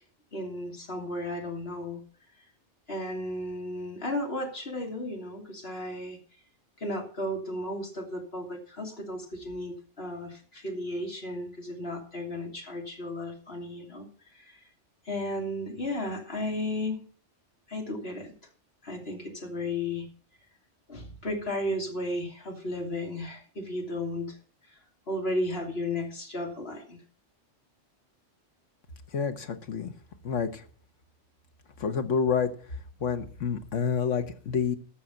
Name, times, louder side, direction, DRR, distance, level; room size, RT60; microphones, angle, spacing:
voice 1, 0.3-2.0 2.9-6.2 6.8-14.6 15.0-17.0 17.7-18.3 18.8-20.1 20.9-24.4 24.7-24.8 25.1-27.0, left 1 dB, 55° left, 1 dB, 3.1 m, -34 dB
voice 2, 29.1-29.9 30.2-30.6 31.8-32.5 33.0-34.8, left 6 dB, 90° left, 8 dB, 1.5 m, -28 dB
13.0 x 6.5 x 7.0 m, 0.43 s
omnidirectional pair, 1.2 m